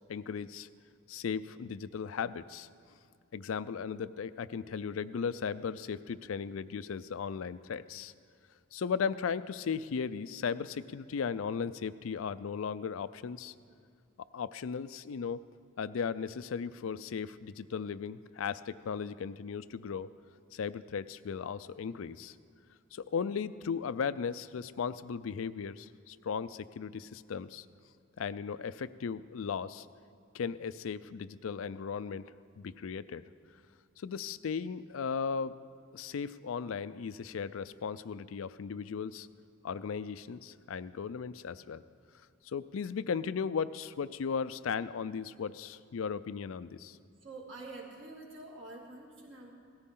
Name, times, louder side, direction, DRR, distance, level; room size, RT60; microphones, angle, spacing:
voice 1, 0.1-0.7 1.1-2.7 3.3-8.1 8.7-13.5 14.2-15.4 15.8-20.1 20.5-22.3 22.9-27.6 28.2-29.9 30.3-32.2 32.6-33.2 34.0-35.5 35.9-39.3 39.6-41.8 42.5-47.0, left 6 dB, 85° left, 15 dB, 0.4 m, -36 dB
voice 2, 47.2-49.5, right 2 dB, 65° right, -2 dB, 2.6 m, -47 dB
17.5 x 14.0 x 3.8 m, 2.2 s
head